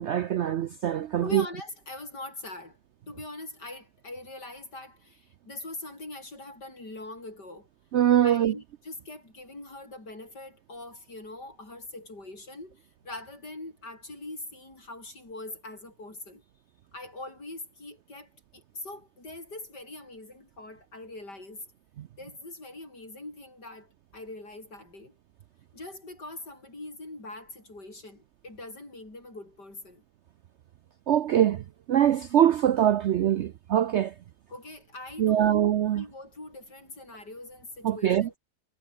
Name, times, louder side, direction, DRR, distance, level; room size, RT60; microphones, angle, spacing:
voice 1, 0.0-1.4 7.9-8.5 22.0-22.1 31.1-34.1 35.2-36.0 37.8-38.3, right 10 dB, 70° right, 0.6 m, -23 dB
voice 2, 1.2-2.8 3.1-7.7 8.2-16.4 16.9-21.7 22.2-25.2 25.7-30.0 34.5-35.6 35.9-38.4, left 2 dB, 90° left, 8.5 m, -42 dB
omnidirectional pair, 1.8 m